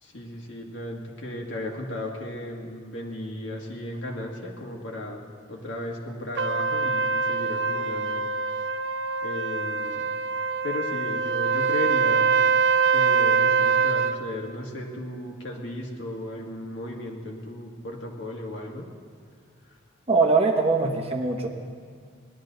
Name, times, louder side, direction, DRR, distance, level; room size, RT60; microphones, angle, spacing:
voice 1, 0.0-8.2 9.2-10.1 10.6-12.3 12.9-18.9, left 1 dB, 65° left, 0 dB, 1.8 m, -35 dB
Trumpet, 6.4-14.2, right 5 dB, 60° right, 0.4 m, -24 dB
voice 2, 20.1-21.5, right 4 dB, 30° right, 2 dB, 1.1 m, -22 dB
19.0 x 11.5 x 3.9 m, 2.1 s
head